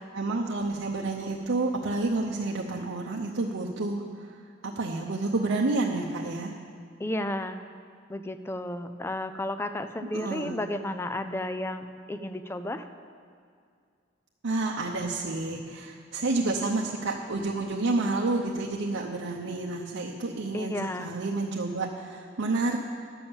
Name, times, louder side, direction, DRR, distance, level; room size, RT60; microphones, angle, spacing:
voice 1, 0.1-4.4 4.8-6.5 10.0-10.6 14.4-22.8, right 3 dB, 90° right, -2 dB, 0.7 m, -29 dB
voice 2, 7.0-7.6 8.1-12.9 20.5-21.1, left 1 dB, 10° left, 9 dB, 0.4 m, -33 dB
11.0 x 7.0 x 7.1 m, 2.3 s
head